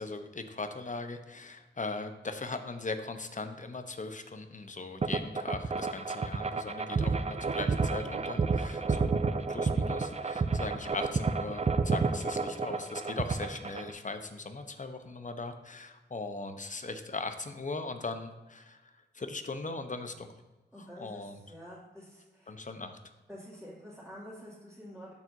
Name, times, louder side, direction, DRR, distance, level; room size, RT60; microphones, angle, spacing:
voice 1, 0.0-9.2 9.5-20.3 21.0-21.4 22.5-23.0, left 3 dB, 40° left, 7 dB, 0.9 m, -39 dB
sound 1, 5.0-13.9, right 4 dB, 35° right, 0.5 m, -30 dB
voice 2, 20.7-22.5 23.3-25.1, equal, 5° left, -10 dB, 2.5 m, -48 dB
12.5 x 4.6 x 2.7 m, 1.1 s
cardioid pair, 45°, 19 cm